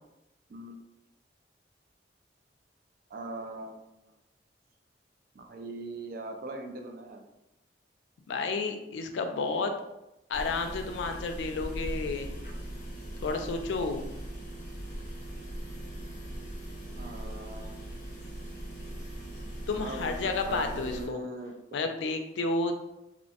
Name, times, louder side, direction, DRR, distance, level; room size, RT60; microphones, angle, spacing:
voice 1, 0.5-0.8 3.1-3.8 5.3-7.2 17.0-17.9 19.8-20.1 20.5-21.5, right 2 dB, 50° right, 5 dB, 0.3 m, -40 dB
voice 2, 8.3-9.7 10.3-12.3 13.2-14.0 19.7-21.2 21.7-22.8, left 3 dB, 85° left, 6 dB, 0.3 m, -31 dB
sound 1, 10.3-21.1, right 1 dB, 45° left, 0.7 m, -40 dB
2.7 x 2.1 x 2.7 m, 0.92 s
head